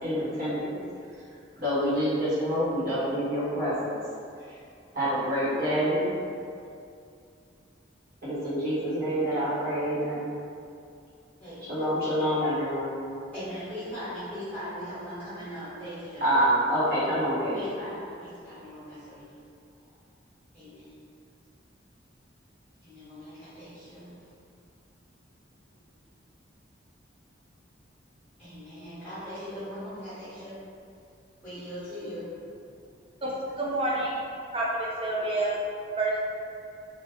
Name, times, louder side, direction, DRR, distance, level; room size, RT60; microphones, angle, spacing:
voice 1, 0.0-0.7 1.6-3.9 4.5-4.6 4.9-6.1 8.2-10.2 11.7-12.9 16.2-17.6, equal, 50° right, -12 dB, 1.3 m, -27 dB
voice 2, 13.3-16.3 17.5-19.4 20.5-21.0 22.8-24.1 28.4-30.6 31.4-32.3, equal, 10° left, -16 dB, 1.4 m, -40 dB
voice 3, 33.2-34.1 34.5-35.6 36.0-36.3, right 2 dB, 30° right, -4 dB, 0.4 m, -28 dB
3.1 x 2.4 x 3.1 m, 2.4 s
head